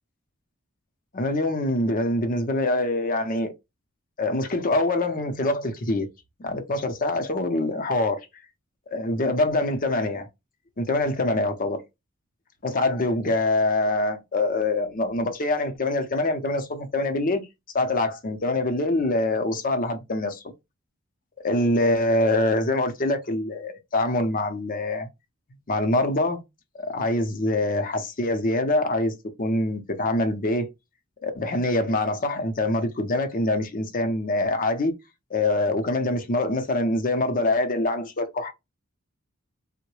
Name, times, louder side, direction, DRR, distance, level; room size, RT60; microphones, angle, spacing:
voice 1, 1.1-3.5 4.2-6.1 6.4-8.2 8.9-10.3 10.8-11.8 12.6-17.5 17.7-20.4 21.4-25.1 25.7-26.4 26.7-30.7 31.2-34.9 35.3-38.5, left 2 dB, 40° left, 0.6 m, -24 dB
3.6 x 2.1 x 3.0 m
head